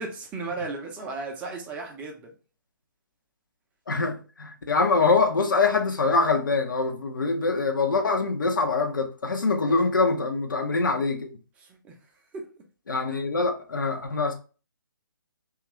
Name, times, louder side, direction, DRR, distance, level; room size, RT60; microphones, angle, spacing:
voice 1, 0.0-2.3 9.7-9.8 11.6-11.9 12.3-12.6, right 3 dB, 10° right, 0.5 m, -35 dB
voice 2, 3.9-11.3 12.9-14.3, left 4 dB, 70° left, 0.6 m, -24 dB
2.9 x 2.4 x 2.9 m
figure-of-eight pair, 135°, 11 cm